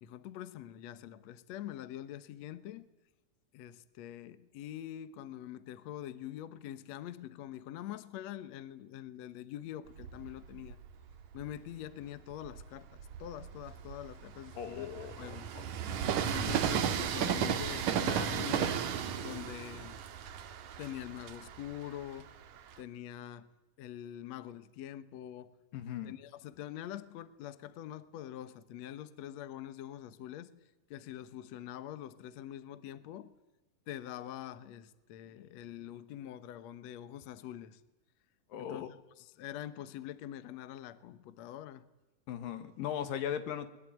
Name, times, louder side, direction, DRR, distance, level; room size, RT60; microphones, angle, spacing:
voice 1, 0.0-2.9 3.5-10.8 11.3-15.5 16.3-20.0 20.8-22.3 22.8-23.5 23.8-25.5 26.0-30.5 30.9-33.3 33.9-37.8 38.6-41.9, left 12 dB, 65° left, 2.0 m, -45 dB
Train, 9.9-11.6 12.2-22.8, right 8 dB, 65° right, 2.5 m, -35 dB
voice 2, 14.6-15.6 25.7-26.2 35.3-35.4 38.5-38.9 42.3-43.7, left 9 dB, 90° left, 3.3 m, -38 dB
22.5 x 21.0 x 9.2 m
omnidirectional pair, 3.9 m